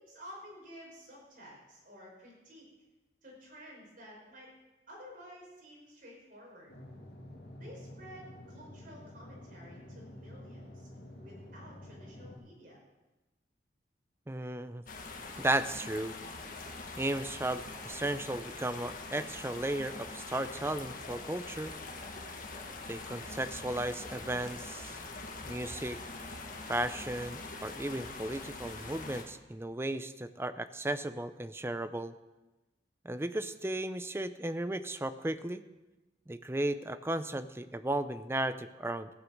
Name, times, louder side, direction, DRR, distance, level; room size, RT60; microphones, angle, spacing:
voice 1, 0.0-2.7 3.2-4.5 4.9-6.7 7.6-10.9 11.2-12.8, equal, 50° right, -2 dB, 5.2 m, -52 dB
sound 1, 6.7-12.4, left 1 dB, 65° left, 2.8 m, -49 dB
voice 2, 14.3-14.8 15.4-16.2 17.0-21.7 22.9-25.0 25.5-26.0 26.7-32.1 33.0-35.6 36.3-39.1, right 1 dB, 15° right, 12 dB, 0.5 m, -35 dB
sound 2, 14.9-29.2, left 3 dB, 50° left, 1.7 m, -43 dB
14.5 x 9.2 x 6.5 m, 1.1 s
head